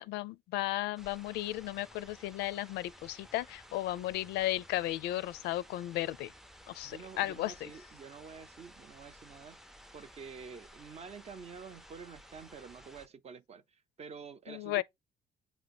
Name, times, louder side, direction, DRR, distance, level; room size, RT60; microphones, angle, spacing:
voice 1, 0.0-6.3 6.7-7.7 14.5-14.8, left 15 dB, 85° left, 0.5 m, -35 dB
sound 1, 1.0-13.1, equal, 5° right, 0.5 m, -55 dB
voice 2, 6.8-9.6 9.9-14.8, right 5 dB, 40° right, 0.7 m, -49 dB
8.1 x 2.9 x 4.2 m
cardioid pair, 110°, 17 cm